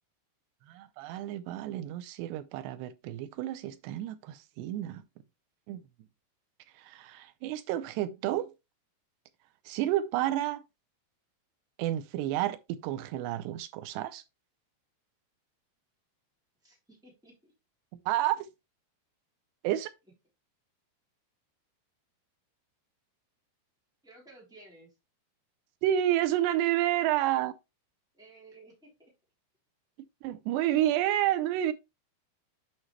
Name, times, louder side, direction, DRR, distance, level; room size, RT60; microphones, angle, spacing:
voice 1, 0.7-5.0 5.7-5.8 6.8-8.5 9.7-10.6 11.8-14.2 18.1-18.5 19.6-19.9 25.8-27.5 30.2-31.7, right 13 dB, 80° right, 2.6 m, -30 dB
voice 2, 16.6-17.5 24.0-24.9 28.1-29.1, right 2 dB, ahead, 2.9 m, -55 dB
8.8 x 5.3 x 3.2 m
omnidirectional pair, 5.1 m